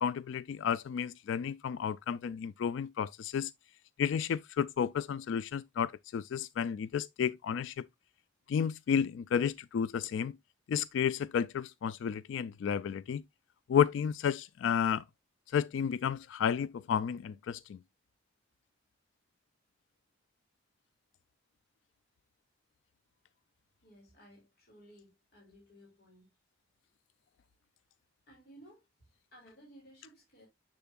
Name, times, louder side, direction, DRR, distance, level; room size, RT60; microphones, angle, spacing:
voice 1, 0.0-3.5 4.0-7.9 8.5-10.3 10.7-13.2 13.7-15.0 15.5-17.8, left 7 dB, 75° left, 0.3 m, -32 dB
voice 2, 23.8-26.3 28.3-30.5, equal, 55° left, 2.7 m, -58 dB
6.8 x 6.7 x 2.3 m
head